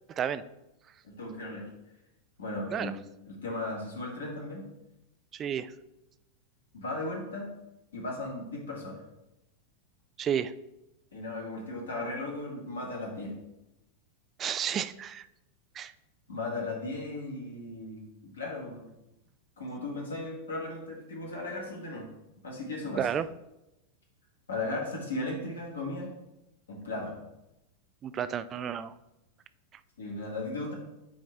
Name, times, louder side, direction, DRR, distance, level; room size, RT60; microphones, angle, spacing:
voice 1, 0.1-0.4 2.7-2.9 5.3-5.7 10.2-10.5 14.4-15.3 15.8-15.9 23.0-23.2 28.0-28.9, right 8 dB, 25° right, 15 dB, 0.3 m, -31 dB
voice 2, 1.0-1.7 2.4-2.9 3.3-4.6 6.7-7.5 7.9-9.0 11.1-13.3 16.3-18.8 19.6-22.1 22.4-23.1 24.5-26.1 26.7-27.2 30.0-30.7, left 2 dB, 70° left, -2 dB, 1.9 m, -36 dB
8.4 x 3.1 x 4.2 m, 0.90 s
figure-of-eight pair, 90°, 0 cm